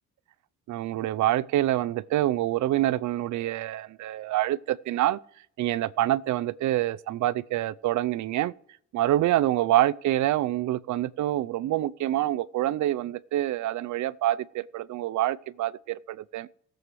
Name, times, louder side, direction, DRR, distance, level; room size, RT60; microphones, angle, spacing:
voice 1, 0.7-5.2 5.6-8.5 8.9-16.5, right 14 dB, 70° right, 0.6 m, -26 dB
19.5 x 7.8 x 3.2 m
cardioid pair, 90°, 30 cm